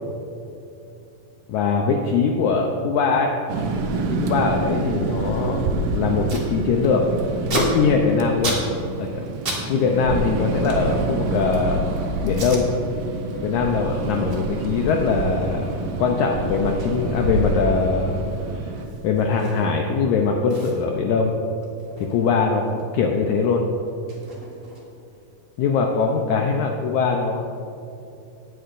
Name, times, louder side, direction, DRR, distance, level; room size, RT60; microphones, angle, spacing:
voice 1, 1.5-3.3 3.9-5.6 5.9-7.0 7.5-8.6 9.0-9.3 9.7-11.8 12.2-12.7 13.4-15.7 16.0-18.2 18.5-18.7 19.0-21.3 22.0-23.6 25.6-27.4, left 5 dB, 75° left, 2 dB, 1.9 m, -22 dB
sound 1, 3.5-18.9, right 3 dB, 80° right, 2.4 m, -27 dB
Packing tape duct tape, 6.3-6.5 6.8-9.6 9.9-11.7 12.3-12.6 13.1-13.3 13.7-19.9 20.1-20.2 20.5-22.9 23.1-25.1, right 2 dB, 30° right, 1.4 m, -34 dB
18.5 x 9.2 x 2.6 m, 2.8 s
omnidirectional pair, 3.8 m